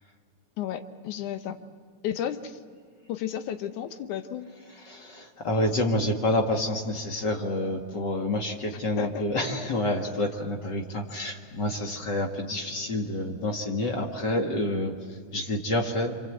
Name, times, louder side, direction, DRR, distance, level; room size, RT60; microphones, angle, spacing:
voice 1, 0.6-1.6 2.0-2.6 3.1-4.5 9.0-9.3, left 10 dB, 80° left, 9 dB, 2.4 m, -33 dB
voice 2, 4.8-16.2, left 1 dB, 40° left, 2 dB, 1.8 m, -28 dB
26.5 x 24.5 x 8.0 m, 2.2 s
omnidirectional pair, 3.5 m